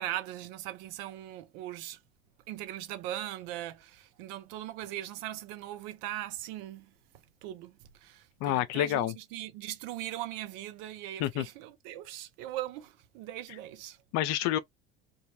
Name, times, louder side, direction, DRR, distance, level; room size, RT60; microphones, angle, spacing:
voice 1, 0.0-2.0 2.5-6.9 7.4-14.0, right 13 dB, 60° right, 0.6 m, -40 dB
voice 2, 8.4-9.2 11.2-11.5 14.1-14.6, left 13 dB, 55° left, 0.4 m, -28 dB
2.2 x 2.0 x 2.7 m
hypercardioid pair, 80°, 32 cm